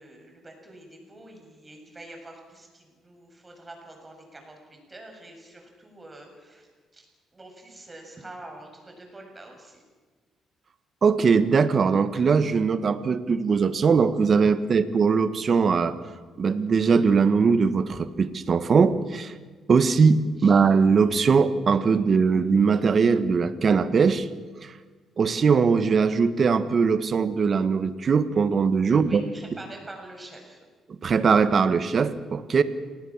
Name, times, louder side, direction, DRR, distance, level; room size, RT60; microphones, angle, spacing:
voice 1, 0.0-7.1 7.3-9.8 20.4-20.6 28.9-30.6, right 2 dB, 20° right, 2 dB, 7.3 m, -46 dB
voice 2, 11.0-15.9 16.4-19.3 19.7-24.3 24.6-24.7 25.2-29.2 31.0-32.6, right 5 dB, 45° right, 12 dB, 1.5 m, -21 dB
28.0 x 18.5 x 7.4 m, 1.4 s
cardioid pair, 90°, 0 cm